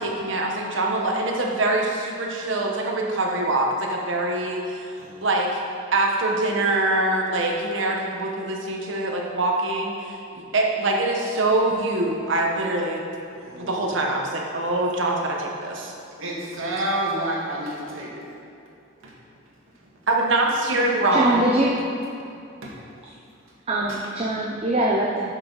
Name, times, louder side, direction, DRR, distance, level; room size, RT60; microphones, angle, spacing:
voice 1, 0.0-4.9 5.2-5.6 5.9-13.0 13.5-15.9 20.1-21.4, right 2 dB, 70° right, 0 dB, 1.2 m, -24 dB
voice 2, 13.3-13.8 16.2-18.4 19.0-19.1 22.6-22.7, right 1 dB, 90° right, -4 dB, 1.8 m, -29 dB
voice 3, 21.1-21.7 23.7-25.3, right 1 dB, 30° right, -3 dB, 0.6 m, -22 dB
11.5 x 6.1 x 4.0 m, 2.6 s
head